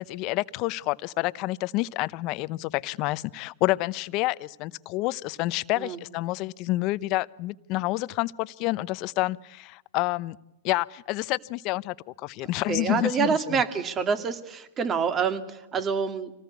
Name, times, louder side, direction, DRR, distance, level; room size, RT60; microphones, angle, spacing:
voice 1, 0.0-10.4 10.6-11.9 12.2-13.6, left 19 dB, 45° left, 16 dB, 0.8 m, -28 dB
voice 2, 12.7-16.3, right 6 dB, 25° right, 9 dB, 2.4 m, -27 dB
26.0 x 19.0 x 8.3 m, 0.92 s
hypercardioid pair, 120°, 0 cm